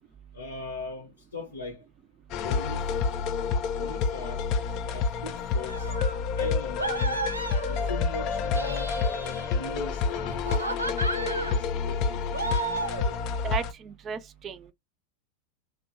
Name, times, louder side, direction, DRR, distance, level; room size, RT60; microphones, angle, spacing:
voice 1, 0.3-1.8 2.4-2.9 3.8-4.4 4.9-5.9 6.3-7.3 7.7-9.0 9.5-12.2, left 2 dB, 75° left, 0.6 m, -39 dB
sound 1, 2.3-13.7, left 5 dB, 40° left, 0.4 m, -29 dB
sound 2, 5.7-6.2 6.8-8.0 8.4-9.7 10.3-11.6 12.3-13.2, right 2 dB, 85° right, 0.5 m, -33 dB
voice 2, 13.4-14.7, right 7 dB, 25° right, 0.4 m, -35 dB
2.8 x 2.1 x 2.6 m
figure-of-eight pair, 90°, 0 cm